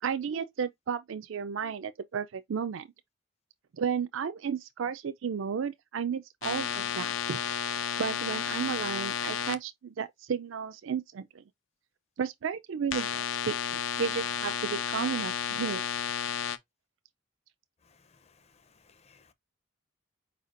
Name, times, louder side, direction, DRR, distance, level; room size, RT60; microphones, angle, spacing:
voice 1, 0.0-2.9 3.7-7.4 8.0-11.4 12.2-15.8, right 7 dB, 80° right, 0.4 m, -33 dB
sound 1, 6.4-9.6 12.9-16.6, left 8 dB, 85° left, 0.6 m, -32 dB
voice 2, 17.8-19.3, left 5 dB, 30° left, 0.6 m, -63 dB
4.9 x 4.1 x 2.5 m
head